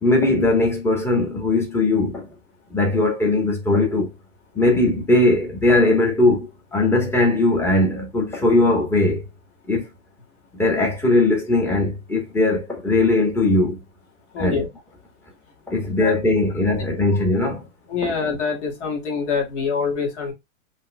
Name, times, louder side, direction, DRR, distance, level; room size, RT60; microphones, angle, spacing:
voice 1, 0.0-2.3 2.7-4.1 4.5-9.2 9.7-9.9 10.5-13.8 14.4-14.6 15.7-17.7 18.0-18.1, left 2 dB, 5° left, 1.2 m, -19 dB
voice 2, 14.3-14.7 16.0-16.1 17.1-17.2 17.9-20.3, left 5 dB, 55° left, 2.5 m, -25 dB
5.3 x 3.0 x 2.2 m
supercardioid pair, 150°, 41 cm